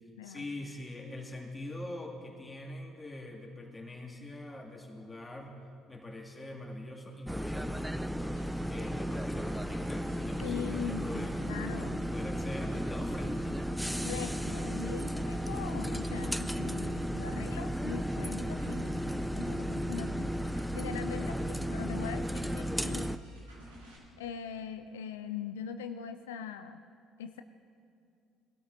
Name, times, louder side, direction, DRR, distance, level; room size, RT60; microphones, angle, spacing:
voice 1, 0.0-5.5 5.9-11.4 11.7-13.7 20.0-20.3 21.1-21.5, left 1 dB, 15° left, -1 dB, 2.2 m, -44 dB
sound 1, 7.3-23.2, equal, 5° right, 0.4 m, -34 dB
sound 2, 8.4-24.0, right 1 dB, 85° right, 2.4 m, -53 dB
voice 2, 10.4-12.0 14.0-20.3 20.7-23.2 24.2-26.8 27.2-27.4, left 8 dB, 80° left, 8 dB, 0.3 m, -42 dB
20.0 x 12.5 x 2.6 m, 2.4 s
figure-of-eight pair, 55°, 0 cm